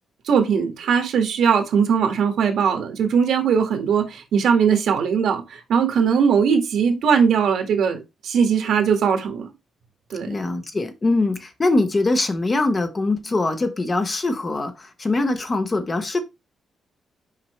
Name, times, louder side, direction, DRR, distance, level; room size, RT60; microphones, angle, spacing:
voice 1, 0.2-9.5 10.1-10.3, right 6 dB, 70° right, 1.7 m, -20 dB
voice 2, 10.3-16.2, left 2 dB, 20° left, 0.8 m, -22 dB
5.7 x 5.3 x 3.1 m
wide cardioid pair, 175°, 0 cm